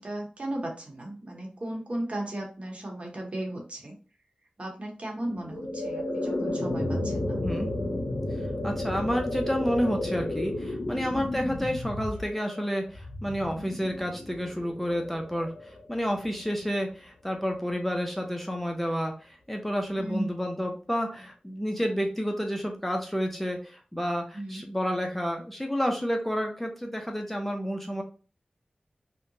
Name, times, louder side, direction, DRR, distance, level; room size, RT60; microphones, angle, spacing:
voice 1, 0.0-4.0 4.6-7.4 19.9-20.3 24.3-24.6, right 1 dB, 50° right, 0 dB, 1.0 m, -35 dB
sound 1, 5.2-16.3, left 1 dB, 80° left, 0.6 m, -33 dB
voice 2, 8.6-28.0, equal, 5° left, 2 dB, 0.5 m, -30 dB
2.8 x 2.1 x 2.6 m, 0.37 s
wide cardioid pair, 50°, 3 cm